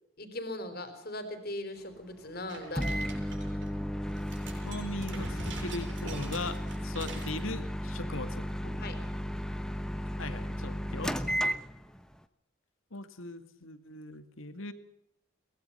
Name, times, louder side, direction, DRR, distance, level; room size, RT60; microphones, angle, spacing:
voice 1, 0.2-2.9 8.8-9.0, left 1 dB, 45° left, 9 dB, 4.0 m, -39 dB
sound 1, 2.5-3.7 4.1-7.4, right 2 dB, 60° right, 7.9 m, -44 dB
Microwave oven, 2.8-12.1, equal, 5° left, 1.0 m, -34 dB
voice 2, 4.6-8.5 10.2-11.2 12.9-14.7, left 3 dB, 80° left, 10 dB, 2.2 m, -39 dB
23.0 x 19.5 x 5.7 m, 0.75 s
head